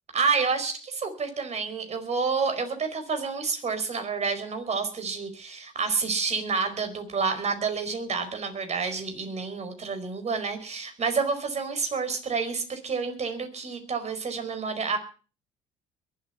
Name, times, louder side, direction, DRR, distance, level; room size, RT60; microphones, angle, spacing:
voice 1, 0.1-15.0, right 5 dB, 40° right, 8 dB, 4.8 m, -29 dB
22.5 x 8.7 x 5.7 m, 0.37 s
supercardioid pair, 75°, 16 cm